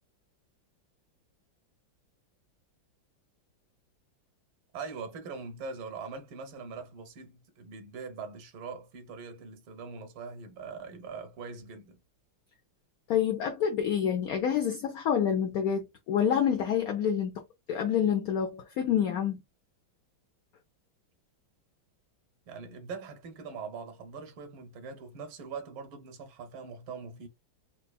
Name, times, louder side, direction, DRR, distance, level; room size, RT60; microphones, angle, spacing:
voice 1, 4.7-12.0 22.5-27.3, right 5 dB, 85° right, 1.7 m, -42 dB
voice 2, 13.1-17.4 17.7-19.4, left 8 dB, 75° left, 0.8 m, -27 dB
4.4 x 2.7 x 2.2 m
omnidirectional pair, 2.2 m